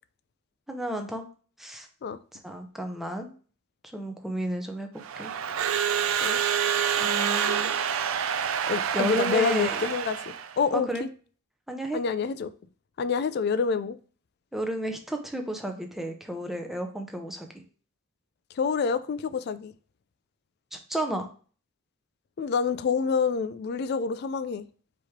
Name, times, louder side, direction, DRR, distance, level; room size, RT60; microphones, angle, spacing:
voice 1, 0.7-1.3 1.6-1.9 2.3-3.3 3.9-4.9 5.2-5.3 7.0-7.8 8.9-9.9 10.7-11.0 11.7-12.0 14.5-17.6 20.7-21.3, right 1 dB, ahead, 0.6 m, -32 dB
Crowd / Alarm, 5.0-10.6, right 8 dB, 85° right, 0.4 m, -27 dB
voice 2, 8.7-11.1 11.9-12.5 13.0-14.0 18.6-19.7 22.4-24.6, left 5 dB, 50° left, 0.3 m, -27 dB
4.6 x 3.0 x 3.5 m
head